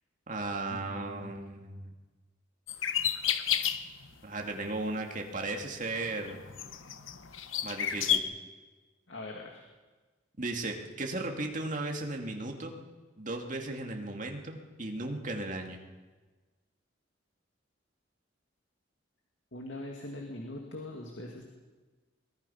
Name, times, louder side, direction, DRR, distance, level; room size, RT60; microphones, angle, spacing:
voice 1, 0.3-1.9 4.2-6.4 7.6-8.3 10.4-12.8 13.2-15.8, right 2 dB, 40° right, 2 dB, 2.3 m, -36 dB
voice 2, 0.9-1.3 9.1-9.6 19.5-21.4, left 1 dB, 70° left, 1 dB, 2.3 m, -42 dB
sound 1, 2.7-4.1 4.6-4.8 5.5-8.2, left 9 dB, 90° left, 1.0 m, -31 dB
23.0 x 19.5 x 5.7 m, 1.3 s
head